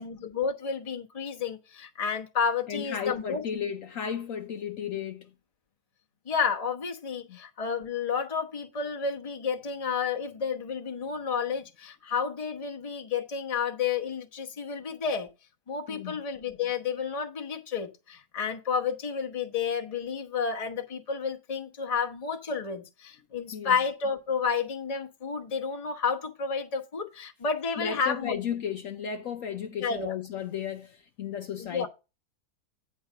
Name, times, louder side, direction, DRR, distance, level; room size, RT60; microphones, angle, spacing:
voice 1, 0.0-3.4 6.2-15.3 15.7-28.4 29.8-30.1 31.6-31.9, left 6 dB, 25° left, 1.0 m, -31 dB
voice 2, 2.7-5.3 7.3-7.4 15.9-16.1 23.5-23.7 27.8-31.9, left 8 dB, 65° left, 1.0 m, -34 dB
9.4 x 4.7 x 5.6 m
omnidirectional pair, 1.7 m